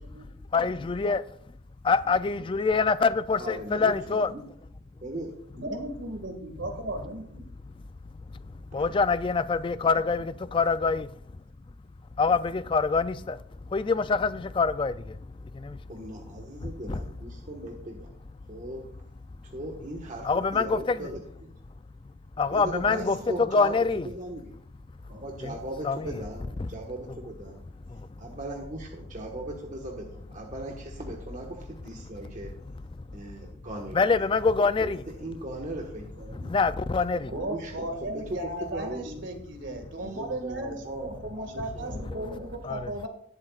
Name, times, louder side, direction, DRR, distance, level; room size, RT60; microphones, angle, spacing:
voice 1, 0.5-1.2 1.8-4.3 8.3-8.4 8.7-11.1 12.2-13.4 13.7-15.8 16.6-17.0 20.2-21.1 22.4-24.1 25.4-25.6 25.8-26.1 26.6-26.7 27.9-28.1 33.0-33.1 33.9-35.0 36.3-37.3 42.6-42.9, left 4 dB, 25° left, 0.3 m, -25 dB
voice 2, 3.4-4.4 5.0-5.7 15.9-18.1 18.5-18.9 19.5-21.5 22.5-23.8 24.0-24.5 25.0-27.6 28.2-32.5 33.1-34.2 34.8-34.9 35.2-36.7 37.3-39.3 40.0-42.5, right 1 dB, 40° right, 1.4 m, -39 dB
voice 3, 5.5-7.5 37.3-40.7 41.0-43.1, right 1 dB, 65° right, 2.0 m, -36 dB
19.5 x 7.8 x 2.4 m
head